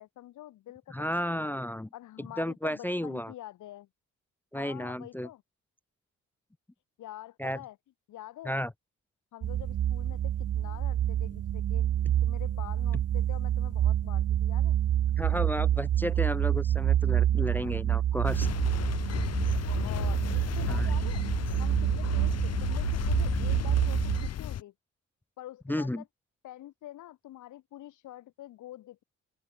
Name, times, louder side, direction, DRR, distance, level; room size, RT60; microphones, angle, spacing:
voice 1, 0.0-1.6 1.9-3.9 4.5-5.4 7.0-7.8 8.1-8.6 9.3-14.8 17.4-17.7 19.6-21.2 21.6-24.7 25.4-26.1 26.4-29.0, left 14 dB, 80° left, 1.9 m, -46 dB
voice 2, 0.9-1.9 2.2-3.3 4.5-5.3 7.4-7.6 8.5-8.7 15.2-18.5 20.7-20.9 25.7-26.0, equal, 5° left, 0.3 m, -33 dB
sound 1, 9.4-24.3, right 11 dB, 55° right, 0.8 m, -27 dB
sound 2, 18.2-24.6, left 10 dB, 55° left, 1.2 m, -33 dB
open air
cardioid pair, 90°, 30 cm